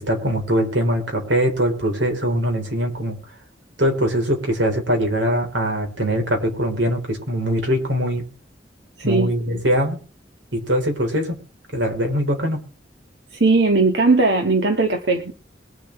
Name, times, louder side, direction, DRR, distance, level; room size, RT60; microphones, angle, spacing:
voice 1, 0.0-3.2 3.8-8.2 9.0-10.0 10.5-11.4 11.7-12.6, equal, 90° right, 3 dB, 4.1 m, -22 dB
voice 2, 13.3-15.3, right 3 dB, 70° right, 3 dB, 1.7 m, -18 dB
22.5 x 7.8 x 3.3 m, 0.36 s
head